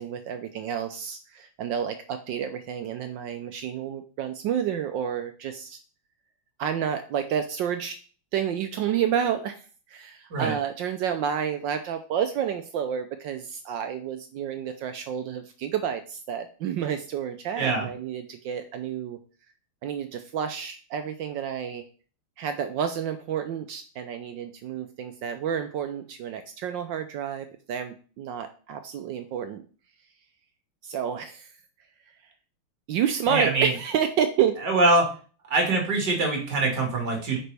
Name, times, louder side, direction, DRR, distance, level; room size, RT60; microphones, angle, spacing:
voice 1, 0.0-5.8 6.6-8.0 8.3-9.6 9.9-19.2 19.8-21.8 22.4-29.6 30.8-31.5 32.9-34.5, right 8 dB, 70° right, 8 dB, 1.2 m, -30 dB
voice 2, 17.6-17.9 33.3-33.7 34.6-35.1 35.5-37.4, right 2 dB, 50° right, 1 dB, 2.4 m, -23 dB
8.6 x 5.1 x 3.4 m, 0.39 s
omnidirectional pair, 2.4 m